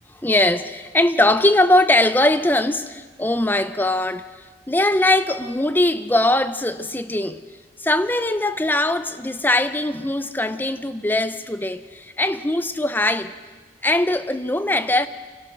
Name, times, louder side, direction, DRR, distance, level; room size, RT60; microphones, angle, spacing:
voice 1, 0.2-4.3 4.7-7.4 7.8-13.4 13.8-15.1, left 1 dB, 10° left, 0.6 m, -20 dB
26.0 x 17.0 x 6.2 m
head